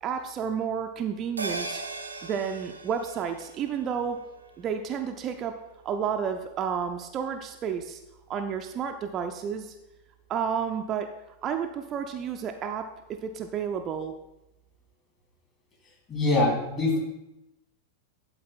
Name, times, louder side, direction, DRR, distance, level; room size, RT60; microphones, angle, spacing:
voice 1, 0.0-1.8 2.2-4.2 4.6-5.6 5.8-8.0 8.3-9.7 10.3-11.1 11.4-12.9 13.2-14.1, right 7 dB, 30° right, 5 dB, 0.5 m, -31 dB
sound 1, 1.4-6.1 6.4-6.5, right 3 dB, 80° right, 0.6 m, -40 dB
voice 2, 16.1-17.0, left 2 dB, 30° left, -1 dB, 2.8 m, -23 dB
11.0 x 4.1 x 4.3 m, 0.93 s
figure-of-eight pair, 90°, 0 cm